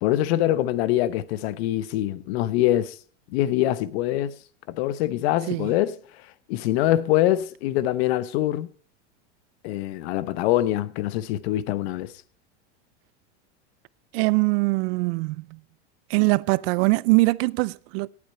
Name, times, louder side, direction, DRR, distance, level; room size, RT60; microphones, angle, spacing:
voice 1, 0.0-3.0 3.3-4.3 4.7-6.0 6.5-8.7 9.6-12.1, left 14 dB, 65° left, 1.1 m, -24 dB
voice 2, 14.1-15.6 16.1-18.1, right 25 dB, 60° right, 0.6 m, -22 dB
18.0 x 8.7 x 4.3 m
supercardioid pair, 135°, 34 cm